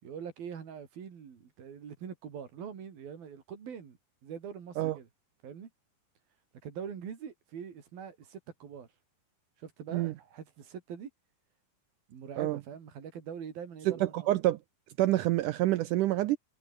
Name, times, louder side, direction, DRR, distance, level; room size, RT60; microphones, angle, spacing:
voice 1, 0.0-5.1 5.4-5.7 6.6-8.9 9.6-11.1 12.1-14.3, right 7 dB, 65° right, 5.2 m, -43 dB
voice 2, 13.9-14.6 15.0-16.4, right 15 dB, 85° right, 1.8 m, -27 dB
omnidirectional pair, 4.5 m